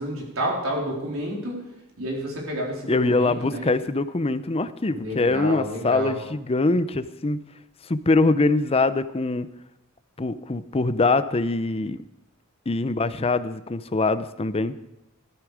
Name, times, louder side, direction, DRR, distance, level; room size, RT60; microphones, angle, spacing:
voice 1, 0.0-1.6 2.0-3.8 4.9-6.2, right 1 dB, 85° right, -2 dB, 4.0 m, -30 dB
voice 2, 2.9-7.4 7.9-9.5 10.2-12.0 12.7-14.8, left 3 dB, 30° left, 13 dB, 0.6 m, -23 dB
14.5 x 13.5 x 5.0 m, 0.91 s
head